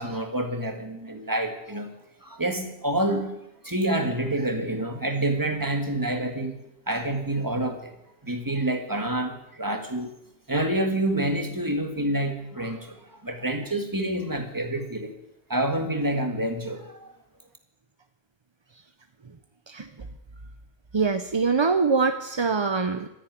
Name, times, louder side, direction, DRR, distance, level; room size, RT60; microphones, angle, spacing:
voice 1, 0.0-1.9 2.2-3.4 3.6-6.6 6.9-7.9 8.2-10.1 10.5-13.0 13.2-15.1 15.5-17.1, right 1 dB, 15° right, 4 dB, 1.9 m, -27 dB
voice 2, 20.9-23.1, right 4 dB, 30° right, 9 dB, 0.5 m, -23 dB
13.5 x 10.0 x 9.3 m, 0.84 s
omnidirectional pair, 1.3 m